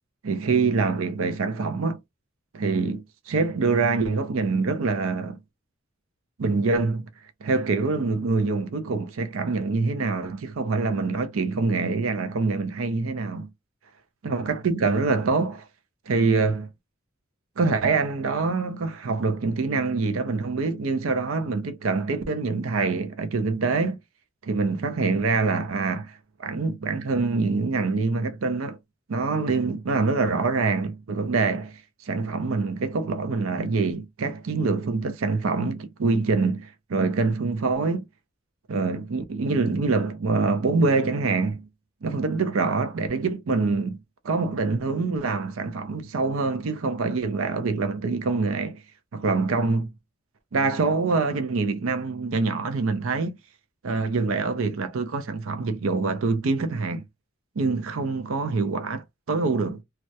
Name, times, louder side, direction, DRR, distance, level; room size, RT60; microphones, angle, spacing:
voice 1, 0.2-2.0 2.5-5.4 6.4-7.1 7.4-13.5 14.2-15.7 16.1-16.7 17.6-24.0 24.4-28.8 29.1-38.0 38.7-41.7 42.0-48.8 49.1-49.9 50.5-53.4 53.8-57.0 57.6-59.8, right 4 dB, 85° right, 0.5 m, -25 dB
2.3 x 2.0 x 2.7 m
head